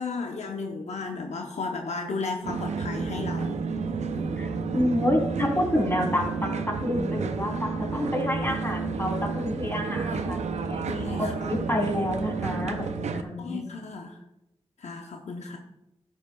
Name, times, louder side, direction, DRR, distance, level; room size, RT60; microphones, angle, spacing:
voice 1, 0.0-3.6 4.1-4.4 10.0-10.3 10.9-11.3 13.4-14.2 14.8-15.6, left 4 dB, 85° left, 3 dB, 0.8 m, -34 dB
sound 1, 2.4-13.2, right 5 dB, 85° right, 0.5 m, -31 dB
voice 2, 4.4-10.8 11.3-13.7, left 1 dB, 20° left, 0 dB, 3.1 m, -28 dB
12.5 x 7.3 x 2.3 m, 0.86 s
cardioid pair, 50°, 11 cm